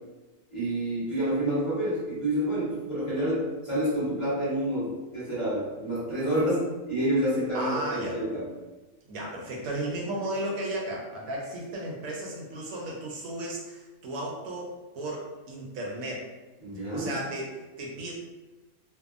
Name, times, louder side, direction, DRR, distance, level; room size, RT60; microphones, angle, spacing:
voice 1, 0.5-8.4 16.6-17.1, right 1 dB, 25° left, -12 dB, 1.0 m, -28 dB
voice 2, 7.5-8.2 9.1-16.3 16.9-18.1, right 1 dB, 75° right, -2 dB, 1.0 m, -34 dB
2.6 x 2.4 x 2.4 m, 1.2 s
omnidirectional pair, 1.5 m